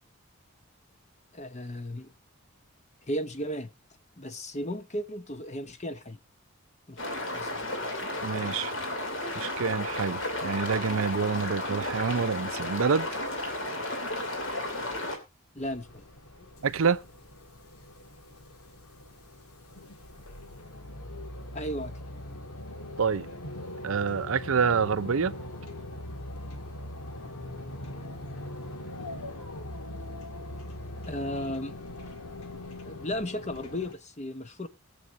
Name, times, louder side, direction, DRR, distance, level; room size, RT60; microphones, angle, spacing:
voice 1, 1.3-2.1 3.1-3.7 4.2-6.2 6.9-7.0 7.3-7.7 15.5-16.0 16.4-16.5 21.5-22.0 31.1-31.8 32.8-34.7, equal, 30° left, 1.0 m, -35 dB
sound 1, 7.0-15.2, left 1 dB, 55° left, 2.8 m, -33 dB
voice 2, 8.2-8.7 9.3-13.1 16.6-17.0 23.0-23.3 23.8-25.3, right 5 dB, 70° right, 0.5 m, -27 dB
sound 2, 15.6-33.9, left 1 dB, 85° left, 1.9 m, -41 dB
21.5 x 7.8 x 2.6 m
head